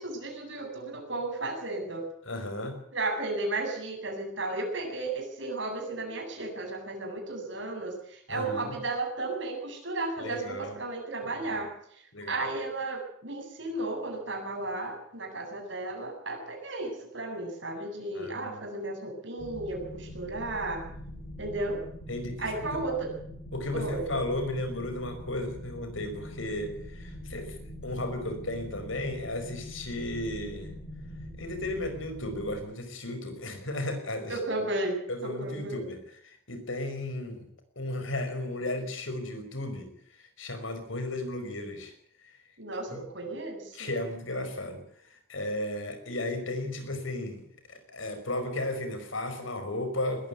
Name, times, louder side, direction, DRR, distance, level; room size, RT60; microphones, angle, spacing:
voice 1, 0.0-2.0 2.9-11.7 12.3-20.8 21.4-21.8 22.4-23.1 23.7-24.2 34.3-35.9 42.6-43.9, right 2 dB, 65° right, 2 dB, 7.7 m, -34 dB
voice 2, 2.3-2.8 8.3-8.7 10.2-10.8 11.3-11.6 12.1-12.4 18.1-18.6 22.1-22.8 23.5-30.7 31.4-34.7 35.1-37.5 37.8-39.9 40.2-41.9 42.2-42.4 42.9-43.0 43.7-50.3, left 1 dB, 75° left, 7 dB, 5.3 m, -35 dB
sound 1, 19.4-32.6, equal, 35° left, 6.2 m, -43 dB
20.0 x 15.0 x 9.4 m, 0.67 s
head